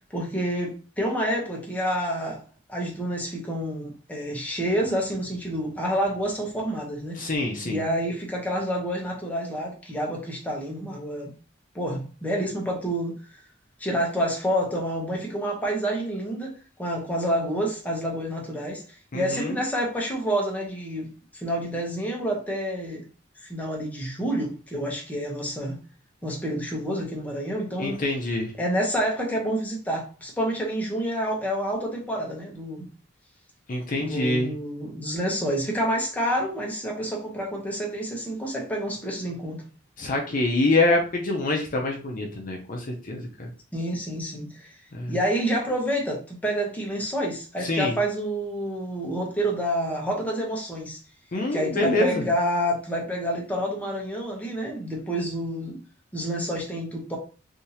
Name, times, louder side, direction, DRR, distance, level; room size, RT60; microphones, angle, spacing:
voice 1, 0.1-2.4 2.7-7.2 7.6-11.3 11.7-13.1 13.8-16.5 16.8-18.8 19.1-23.1 23.4-25.8 26.2-28.0 28.6-32.9 34.0-39.6 43.7-44.8 45.1-51.0 51.5-55.8 56.1-57.2, equal, 10° left, 0.9 m, -28 dB
voice 2, 7.2-7.8 19.1-19.6 27.8-28.5 33.7-34.5 40.0-43.5 44.9-45.1 47.6-47.9 51.3-52.2, left 2 dB, 45° left, 0.6 m, -25 dB
3.5 x 2.7 x 2.8 m
head